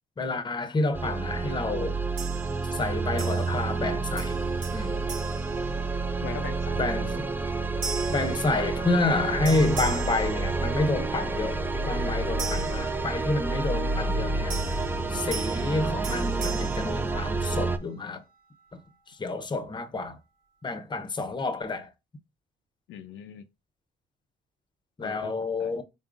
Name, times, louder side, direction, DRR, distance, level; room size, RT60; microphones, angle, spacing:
voice 1, 0.2-2.0 2.7-4.4 4.7-5.0 6.8-7.3 8.1-14.6 15.1-18.2 18.7-18.8 19.1-20.2 20.6-21.9 25.0-25.8, left 2 dB, 25° left, 0.7 m, -29 dB
sound 1, 0.9-17.8, right 3 dB, 10° right, 0.4 m, -29 dB
sound 2, 2.2-2.8 3.2-3.9 4.2-6.3 6.8-7.1 7.8-9.1 9.4-11.1 12.4-13.6 14.5-17.7, right 5 dB, 85° right, 1.6 m, -40 dB
voice 2, 6.2-7.1 22.9-23.5 25.0-25.3 25.6-25.8, left 9 dB, 80° left, 0.5 m, -41 dB
4.0 x 3.7 x 2.4 m
cardioid pair, 90°, 20 cm